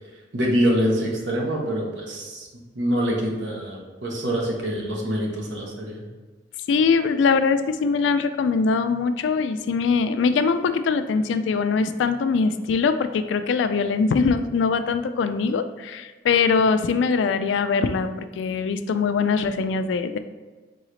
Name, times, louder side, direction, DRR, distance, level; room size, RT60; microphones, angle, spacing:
voice 1, 0.3-2.5 2.8-6.1, equal, 85° right, -1 dB, 1.0 m, -25 dB
voice 2, 6.7-20.2, left 5 dB, 90° left, 11 dB, 0.3 m, -22 dB
3.9 x 3.8 x 3.1 m, 1.3 s
head